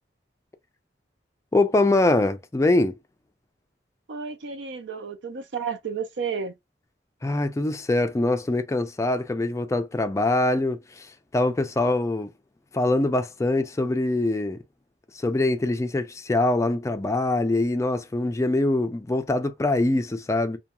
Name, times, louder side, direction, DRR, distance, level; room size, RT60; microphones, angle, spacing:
voice 1, 1.5-3.0 7.2-12.3 12.7-14.6 15.1-20.6, left 2 dB, 15° left, 0.3 m, -23 dB
voice 2, 4.1-6.5, right 6 dB, 85° right, 0.5 m, -32 dB
2.3 x 2.2 x 2.8 m
head